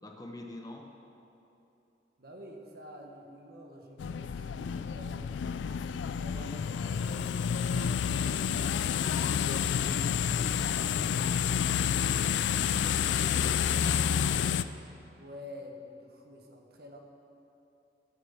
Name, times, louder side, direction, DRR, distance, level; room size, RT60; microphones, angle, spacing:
voice 1, 0.0-0.9 11.5-11.9 12.3-14.5, left 1 dB, 20° left, 2 dB, 0.8 m, -46 dB
voice 2, 2.2-8.8 15.2-17.0, equal, 60° right, 2 dB, 1.2 m, -49 dB
sound 1, 4.0-14.6, left 8 dB, 85° left, 0.3 m, -29 dB
9.1 x 7.6 x 7.0 m, 2.8 s
head